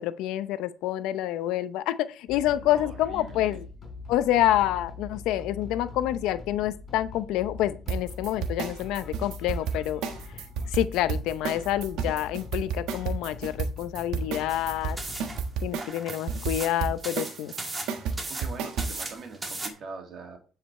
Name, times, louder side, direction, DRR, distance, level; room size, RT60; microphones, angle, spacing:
voice 1, 0.0-3.7 4.1-10.0 10.7-15.0 15.6-17.5, left 13 dB, 80° left, 0.6 m, -27 dB
sound 1, 2.3-15.5, left 3 dB, 35° left, 4.1 m, -43 dB
voice 2, 2.5-3.6 16.1-16.2 18.3-20.4, right 4 dB, 50° right, 2.3 m, -43 dB
sound 2, 7.9-19.1, right 5 dB, 75° right, 1.4 m, -31 dB
sound 3, 14.5-19.7, right 2 dB, 20° right, 1.6 m, -38 dB
10.0 x 5.0 x 4.4 m
cardioid pair, 110°, 0 cm